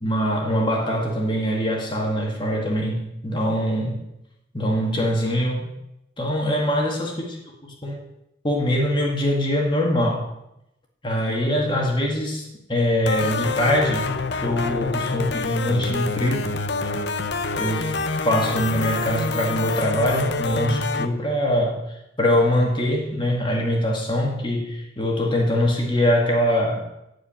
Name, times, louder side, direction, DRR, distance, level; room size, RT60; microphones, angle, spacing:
voice 1, 0.0-4.0 4.5-5.7 6.2-7.4 7.6-8.0 8.4-10.3 11.0-14.1 14.4-16.5 17.6-26.8, equal, 25° left, -1 dB, 2.0 m, -23 dB
sound 1, 13.0-21.1, left 4 dB, 65° left, 0.8 m, -27 dB
14.0 x 5.1 x 8.9 m, 0.86 s
head